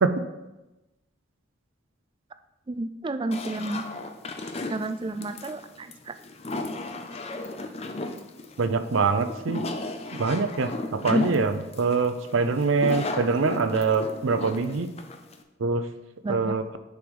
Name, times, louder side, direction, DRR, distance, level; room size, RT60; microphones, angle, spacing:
voice 1, 2.7-3.8 4.7-6.1 16.2-16.6, right 2 dB, 25° right, 10 dB, 0.3 m, -31 dB
sound 1, 3.3-15.4, left 2 dB, 30° left, 0.5 m, -33 dB
voice 2, 8.6-9.7 10.1-14.9 15.6-15.8 16.3-16.6, right 4 dB, 80° right, 11 dB, 0.6 m, -24 dB
7.0 x 4.8 x 5.3 m, 1.0 s
head